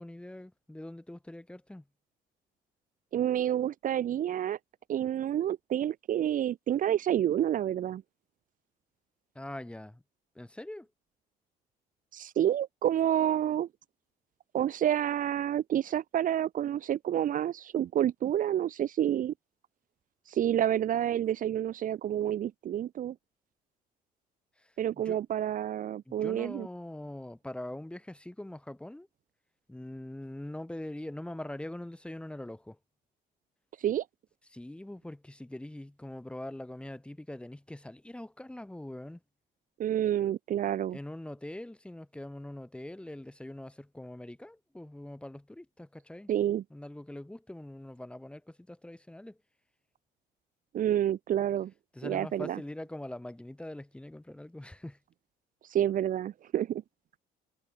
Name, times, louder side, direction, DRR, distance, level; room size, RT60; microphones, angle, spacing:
voice 1, 0.0-1.8 9.3-10.0 10.3-10.9 24.6-24.7 25.0-25.2 26.1-29.1 29.7-32.8 34.5-39.2 40.9-46.3 46.7-49.4 51.9-55.0, left 1 dB, 5° left, 3.9 m, -43 dB
voice 2, 3.1-4.6 4.9-8.0 12.1-13.7 14.5-19.3 20.3-23.1 24.8-26.7 33.8-34.0 39.8-41.0 46.3-46.6 50.7-51.7 52.0-52.6 55.7-56.8, right 11 dB, 50° right, 1.0 m, -29 dB
cardioid pair, 110°, 17 cm